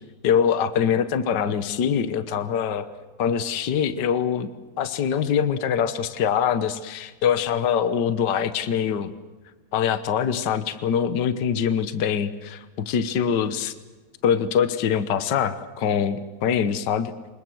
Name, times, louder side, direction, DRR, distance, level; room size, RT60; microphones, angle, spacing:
voice 1, 0.2-2.9 3.2-4.5 4.8-9.1 9.7-13.7 14.2-17.1, left 8 dB, 75° left, 13 dB, 0.9 m, -23 dB
25.5 x 21.5 x 7.8 m, 1.2 s
omnidirectional pair, 3.5 m